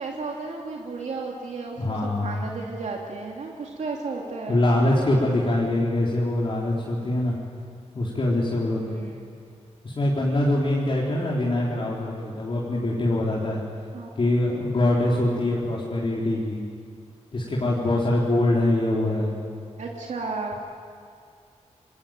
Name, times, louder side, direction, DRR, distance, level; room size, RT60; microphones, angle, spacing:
voice 1, 0.0-4.6 8.8-9.3 13.9-14.1 19.8-20.6, right 4 dB, 75° right, -1 dB, 2.9 m, -33 dB
voice 2, 1.8-2.5 4.5-7.3 7.9-8.9 9.8-13.6 14.2-16.6 17.3-19.3, left 1 dB, 45° left, -5 dB, 4.1 m, -23 dB
27.0 x 22.0 x 9.1 m, 2.2 s
wide cardioid pair, 130°, 12 cm